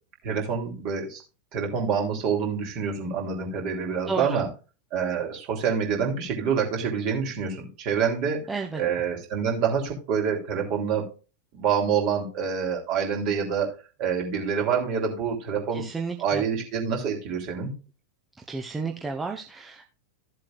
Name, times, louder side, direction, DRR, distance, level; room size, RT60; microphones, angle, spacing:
voice 1, 0.2-1.2 1.5-4.5 4.9-8.4 8.8-11.1 11.5-13.7 14.0-15.9 16.2-17.7, right 6 dB, 40° right, 1 dB, 3.5 m, -27 dB
voice 2, 4.1-4.4 8.5-8.8 15.7-16.4 18.4-19.8, right 4 dB, 10° right, 2 dB, 1.0 m, -32 dB
14.5 x 7.5 x 2.5 m, 0.33 s
figure-of-eight pair, 90°, 0 cm